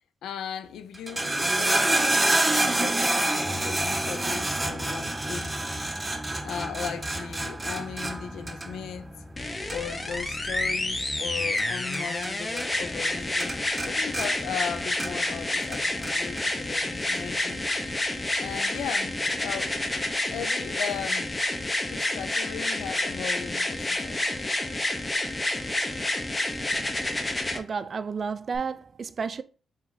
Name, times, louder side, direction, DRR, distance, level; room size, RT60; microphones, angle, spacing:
voice 1, 0.2-5.6 6.4-9.2 9.7-17.7 18.4-19.8 20.3-21.3 21.9-24.2, left 8 dB, 85° left, 0.4 m, -37 dB
sound 1, 0.9-12.3 12.6-13.1 13.4-15.4 15.7-16.5 17.2-17.3, right 2 dB, 20° right, 0.7 m, -28 dB
sound 2, 9.4-27.6 28.5-28.6, left 1 dB, 25° left, 1.0 m, -29 dB
voice 2, 27.3-29.4, right 5 dB, 55° right, 0.4 m, -32 dB
3.6 x 2.9 x 4.7 m
supercardioid pair, 50°, 0 cm